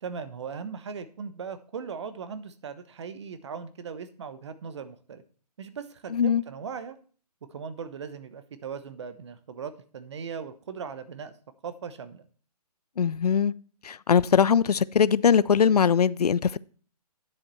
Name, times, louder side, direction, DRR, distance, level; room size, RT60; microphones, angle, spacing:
voice 1, 0.0-5.2 5.6-7.0 7.4-11.3 11.6-12.3, right 6 dB, 45° right, 1.1 m, -38 dB
voice 2, 6.1-6.4 13.0-13.5 13.8-16.6, left 7 dB, 70° left, 0.5 m, -21 dB
10.0 x 7.7 x 4.2 m
figure-of-eight pair, 150°, 21 cm